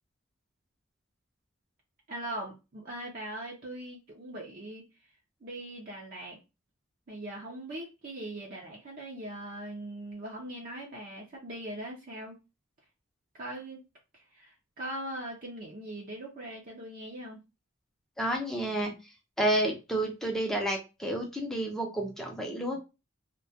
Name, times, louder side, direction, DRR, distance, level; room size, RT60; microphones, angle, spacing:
voice 1, 2.1-4.8 5.4-6.4 7.1-12.4 13.3-13.8 14.1-17.4, right 1 dB, 45° right, -2 dB, 0.5 m, -40 dB
voice 2, 18.2-18.9 19.4-22.8, right 1 dB, ahead, 0 dB, 0.5 m, -30 dB
2.2 x 2.1 x 2.7 m, 0.27 s
head